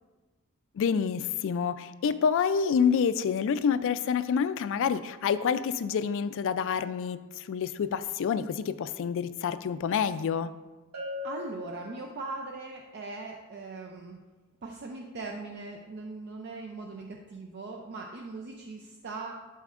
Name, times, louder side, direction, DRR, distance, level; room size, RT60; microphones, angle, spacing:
voice 1, 0.8-10.5, left 6 dB, 60° left, 13 dB, 0.3 m, -28 dB
Bell, 10.9-12.6, left 4 dB, 80° right, 1.3 m, -40 dB
voice 2, 11.2-14.2 14.6-19.4, right 3 dB, 50° right, 1 dB, 0.5 m, -40 dB
11.0 x 4.2 x 2.4 m, 1.3 s
head